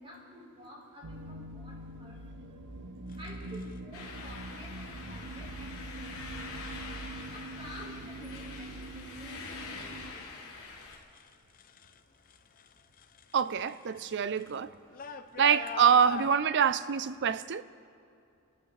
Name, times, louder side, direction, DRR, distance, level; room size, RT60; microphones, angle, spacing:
voice 1, 0.0-2.5 3.2-6.6 7.3-10.5, equal, 25° right, 4.2 m, -50 dB
sound 1, 1.0-10.1, right 1 dB, 90° right, 0.9 m, -43 dB
sound 2, 3.1-3.8 4.9-5.3 5.8-6.3 6.8-7.4 7.7-12.0 12.3-16.3, left 5 dB, 40° left, 0.6 m, -45 dB
sound 3, 3.9-11.0, left 4 dB, 65° left, 3.6 m, -45 dB
voice 2, 13.3-14.7 15.4-17.6, right 7 dB, 55° right, 0.5 m, -25 dB
29.5 x 14.0 x 3.3 m
head